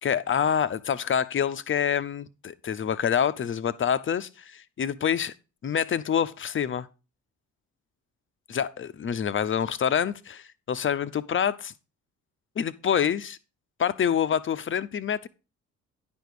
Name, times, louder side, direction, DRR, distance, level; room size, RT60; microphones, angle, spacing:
voice 1, 0.0-5.3 5.6-6.9 8.5-11.7 12.6-13.4 13.8-15.3, left 8 dB, 30° left, 0.7 m, -26 dB
10.5 x 5.2 x 4.8 m
hypercardioid pair, 45°, 39 cm